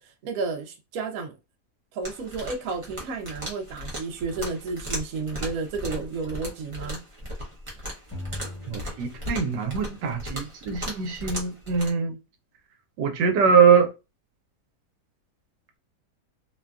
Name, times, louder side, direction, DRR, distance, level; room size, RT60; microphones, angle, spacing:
voice 1, 0.0-1.4 1.9-7.0, right 4 dB, 65° right, 1.0 m, -32 dB
sound 1, 2.0-11.9, equal, 30° right, 0.5 m, -37 dB
sound 2, 8.1-9.9, left 1 dB, 25° left, 0.7 m, -40 dB
voice 2, 8.7-12.2 13.0-13.9, right 6 dB, 85° right, 1.3 m, -22 dB
3.1 x 2.2 x 2.4 m
omnidirectional pair, 1.8 m